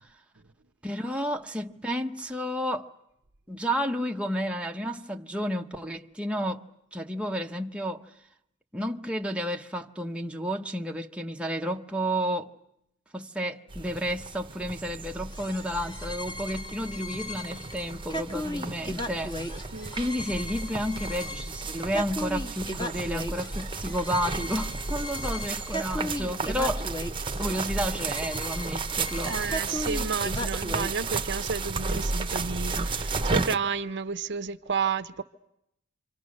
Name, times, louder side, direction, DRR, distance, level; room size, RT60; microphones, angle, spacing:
voice 1, 0.8-2.9 3.5-8.1 8.7-12.5 13.1-19.4 19.9-26.9 27.4-29.4, equal, 5° right, 1.0 m, -31 dB
sound 1, 13.7-33.6, right 3 dB, 25° right, 1.0 m, -33 dB
sound 2, 15.3-31.0, left 1 dB, 20° left, 1.6 m, -37 dB
voice 2, 19.7-20.1 29.2-35.2, right 5 dB, 55° right, 0.9 m, -31 dB
28.0 x 25.0 x 6.5 m
head